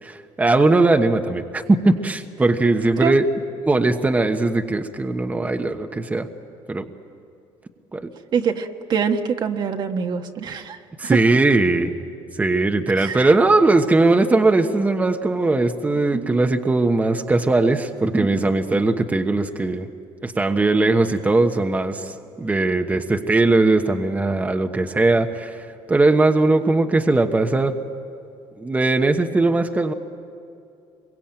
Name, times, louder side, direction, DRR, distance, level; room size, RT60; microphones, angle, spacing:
voice 1, 0.0-3.3 3.6-6.3 6.7-6.8 7.9-8.1 11.0-11.9 12.4-19.9 20.2-27.8 28.6-29.9, right 2 dB, 15° right, 5 dB, 1.2 m, -19 dB
voice 2, 8.3-11.2 13.0-13.3, right 6 dB, 50° right, 5 dB, 1.4 m, -24 dB
26.5 x 23.0 x 8.9 m, 2.5 s
cardioid pair, 105°, 10 cm